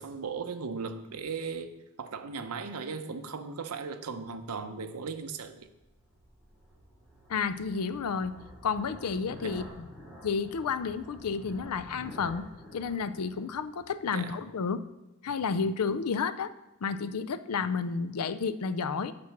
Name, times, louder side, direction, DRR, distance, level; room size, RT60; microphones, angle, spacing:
voice 1, 0.0-1.7 2.0-5.7 9.4-9.6 14.1-14.4, right 5 dB, 80° right, 9 dB, 0.7 m, -37 dB
sound 1, 5.3-14.4, equal, ahead, 2.4 m, -49 dB
voice 2, 7.3-8.3 8.6-9.9 10.2-12.4 12.7-14.8 15.2-16.5 16.8-19.1, left 5 dB, 80° left, 14 dB, 0.5 m, -31 dB
8.5 x 6.1 x 5.9 m, 0.98 s
head